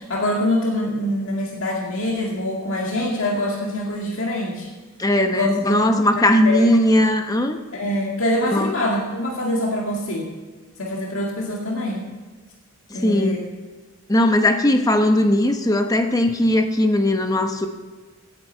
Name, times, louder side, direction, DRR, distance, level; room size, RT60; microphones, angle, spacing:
voice 1, 0.0-4.7 5.3-5.8 6.2-6.7 7.7-10.3 10.8-12.1 12.9-13.4, left 1 dB, 70° left, -1 dB, 2.1 m, -24 dB
voice 2, 5.0-7.6 8.5-8.8 12.9-13.4 14.1-17.7, left 1 dB, 15° left, 6 dB, 0.8 m, -18 dB
16.5 x 9.9 x 4.5 m, 1.4 s
head